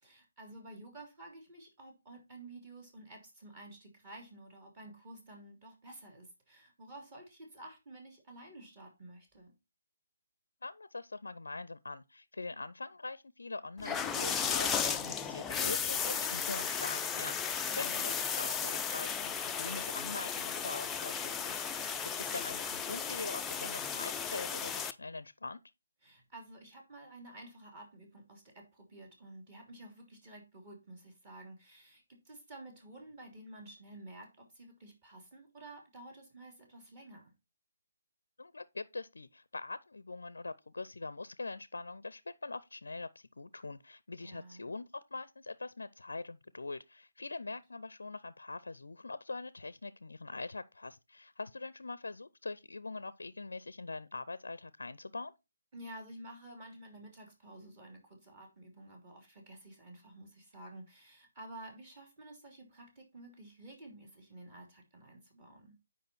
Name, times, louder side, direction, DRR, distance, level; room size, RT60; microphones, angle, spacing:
voice 1, 0.0-9.5 17.7-18.2 26.0-37.3 44.2-44.7 47.4-47.5 55.7-65.7, right 1 dB, 25° right, 3.0 m, -51 dB
voice 2, 10.6-25.6 38.4-55.3, left 3 dB, 70° left, 0.5 m, -43 dB
sound 1, 13.8-24.9, left 7 dB, 10° left, 0.4 m, -35 dB
9.1 x 5.1 x 4.3 m
figure-of-eight pair, 140°, 0 cm